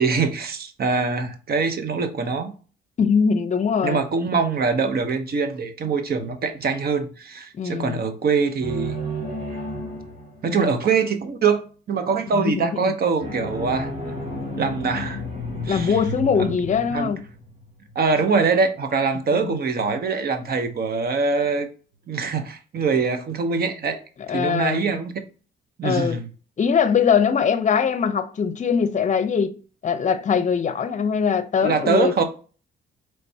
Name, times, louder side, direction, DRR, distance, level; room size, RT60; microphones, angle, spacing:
voice 1, 0.0-2.5 3.8-9.0 10.4-13.9 14.6-15.2 15.6-16.0 16.4-16.5 16.9-17.1 17.9-21.7 22.1-24.0 24.3-25.1 25.8-26.3 31.6-32.2, right 5 dB, 50° right, 0.9 m, -23 dB
voice 2, 3.0-4.0 7.5-8.0 10.5-10.8 12.3-12.9 15.7-17.2 19.3-19.6 24.3-24.8 25.8-26.2 26.6-29.5 29.8-32.2, left 6 dB, 40° left, 0.6 m, -22 dB
sound 1, 8.6-10.8 13.2-18.2, equal, 35° right, 2.0 m, -32 dB
4.4 x 3.3 x 2.7 m
cardioid pair, 90°, 20 cm